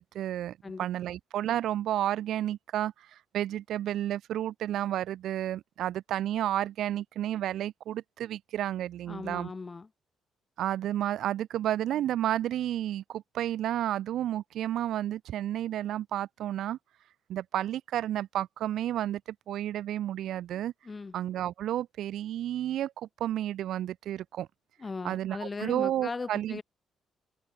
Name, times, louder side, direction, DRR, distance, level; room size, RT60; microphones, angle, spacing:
voice 1, 0.0-9.5 10.6-16.8 17.3-20.7 21.1-24.5 25.0-26.6, right 12 dB, 75° right, 0.5 m, -31 dB
voice 2, 9.1-9.9 20.8-21.1 24.8-26.6, left 4 dB, 30° left, 2.0 m, -38 dB
cardioid pair, 90°, 0 cm